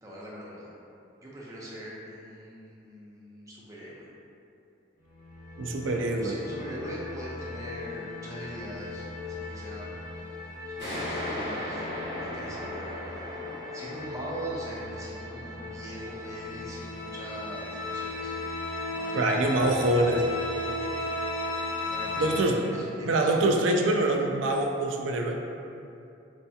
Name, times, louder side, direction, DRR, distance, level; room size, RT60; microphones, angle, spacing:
voice 1, 0.0-0.7 1.2-4.1 5.9-10.1 10.3-10.4 10.8-11.8 12.2-13.3 13.7-18.3 18.9-19.8 21.9-23.3, equal, 15° right, -6 dB, 0.5 m, -41 dB
sound 1, 5.0-22.4, left 2 dB, 50° left, 0.7 m, -36 dB
voice 2, 5.6-6.4 19.1-20.2 22.2-22.6 23.0-25.4, right 2 dB, 80° right, 2 dB, 0.4 m, -25 dB
sound 2, 10.8-18.0, equal, 75° left, 1.1 m, -39 dB
4.0 x 2.7 x 2.3 m, 2.6 s
head